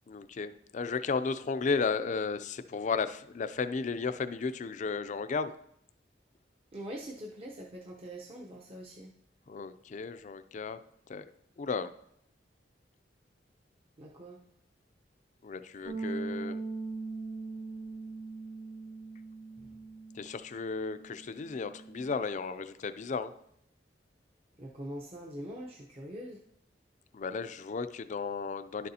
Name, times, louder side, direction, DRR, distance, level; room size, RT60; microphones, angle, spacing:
voice 1, 0.1-5.5 9.5-10.8 11.1-11.3 11.6-11.9 15.4-16.6 20.1-23.3 27.1-28.9, left 4 dB, 40° left, 12 dB, 0.4 m, -34 dB
voice 2, 6.7-9.1 14.0-14.4 19.6-19.7 24.6-26.4, equal, 35° right, -1 dB, 0.7 m, -43 dB
Bass guitar, 15.9-22.1, right 3 dB, 80° right, 2.3 m, -41 dB
11.0 x 6.6 x 2.8 m, 0.72 s
head